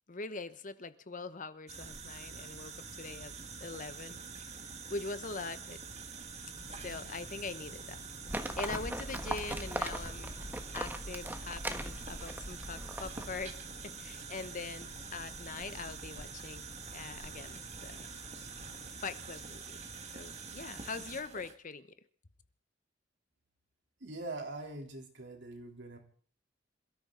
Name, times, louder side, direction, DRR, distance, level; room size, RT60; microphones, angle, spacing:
voice 1, 0.1-4.2 4.9-5.8 6.8-8.0 8.6-10.3 10.7-16.7 16.9-18.0 19.0-19.8 20.1-21.9, left 4 dB, 45° left, 1.0 m, -42 dB
sound 1, 1.7-21.6, right 5 dB, 40° right, 1.7 m, -46 dB
sound 2, 6.5-18.9, left 1 dB, 65° left, 2.9 m, -54 dB
Livestock farm animals working animals, 8.3-13.5, right 1 dB, 10° right, 1.4 m, -39 dB
voice 2, 24.0-26.0, right 2 dB, 70° right, 3.3 m, -43 dB
27.0 x 13.5 x 3.9 m
head